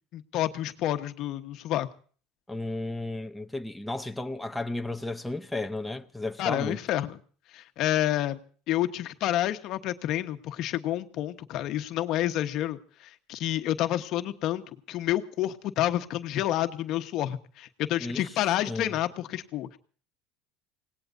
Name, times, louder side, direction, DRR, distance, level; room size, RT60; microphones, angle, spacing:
voice 1, 0.1-1.9 6.4-7.2 7.5-8.4 8.7-19.8, left 13 dB, 55° left, 1.1 m, -29 dB
voice 2, 2.5-6.8 18.0-18.2 18.7-19.0, left 2 dB, 5° left, 0.7 m, -33 dB
26.0 x 18.5 x 2.6 m
supercardioid pair, 105°, 0 cm